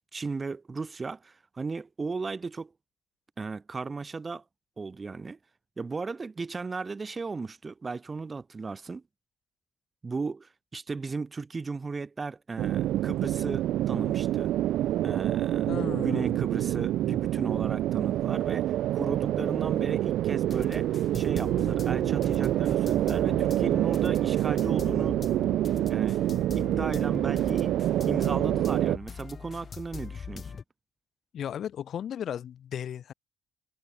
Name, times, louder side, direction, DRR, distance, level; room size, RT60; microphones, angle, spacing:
voice 1, 0.1-2.7 3.4-4.4 4.8-5.4 5.8-9.0 10.0-14.5 15.0-15.7 16.0-20.9 21.1-25.2 25.9-26.2 26.6-27.8 28.1-30.5, right 4 dB, 30° right, 1.8 m, -35 dB
sound 1, 12.6-29.0, right 13 dB, 85° right, 0.3 m, -27 dB
voice 2, 15.7-16.4 31.3-33.1, left 9 dB, 65° left, 0.7 m, -35 dB
sound 2, 20.5-30.6, left 6 dB, 45° left, 3.3 m, -41 dB
cardioid pair, 90°, 0 cm